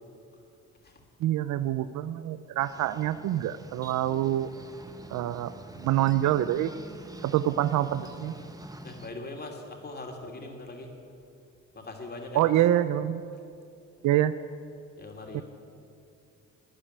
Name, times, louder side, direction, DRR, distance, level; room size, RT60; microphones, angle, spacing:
voice 1, 1.2-4.5 5.1-5.5 5.8-6.7 7.2-8.3 12.3-13.2 14.0-14.3 15.3-15.4, right 13 dB, 75° right, 14 dB, 0.5 m, -26 dB
sound 1, 2.6-9.1, right 2 dB, 10° right, 1.1 m, -45 dB
voice 2, 8.8-10.9 11.7-12.5 15.0-15.4, left 2 dB, 30° left, 2 dB, 2.8 m, -41 dB
13.0 x 10.0 x 9.9 m, 2.5 s
cardioid pair, 90°, 30 cm